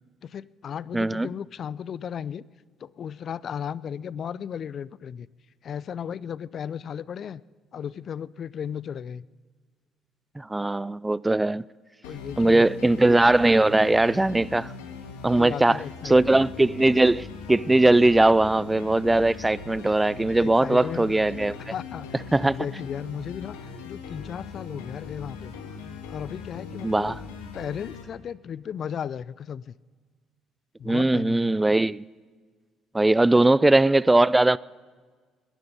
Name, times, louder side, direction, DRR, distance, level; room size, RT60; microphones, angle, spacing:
voice 1, 0.2-2.4 2.8-5.3 5.6-7.4 7.7-9.3 12.0-12.8 15.3-16.4 20.4-21.2 21.7-22.1 22.4-25.5 26.1-27.1 27.5-29.8 30.8-31.6, left 8 dB, 55° left, 0.4 m, -35 dB
voice 2, 0.9-1.3 10.4-11.6 12.4-14.7 15.2-21.6 22.3-22.6 26.8-27.2 30.8-32.0 32.9-34.6, right 2 dB, 15° right, 0.4 m, -20 dB
sound 1, 12.0-28.0, left 5 dB, 85° left, 1.6 m, -40 dB
21.5 x 11.0 x 5.4 m
hypercardioid pair, 60°, 0 cm